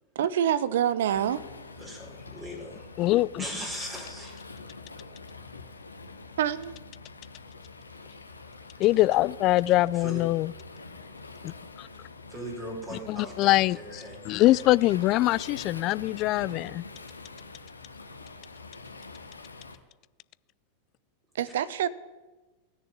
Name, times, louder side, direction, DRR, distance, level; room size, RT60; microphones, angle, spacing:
voice 1, 0.1-1.4 6.4-6.7 21.4-21.9, right 10 dB, 60° right, 0.8 m, -26 dB
Waves surf, 1.1-19.8, left 3 dB, 80° left, 1.3 m, -45 dB
voice 2, 1.8-2.9 3.4-4.3 9.9-10.2 12.3-14.2 14.5-14.6 15.1-15.4 21.4-21.5, equal, 15° right, 4.9 m, -39 dB
voice 3, 3.0-3.4 8.8-10.5 11.4-11.9 13.1-16.8, left 17 dB, 40° left, 0.4 m, -24 dB
17.0 x 6.9 x 10.0 m
figure-of-eight pair, 90°, 0 cm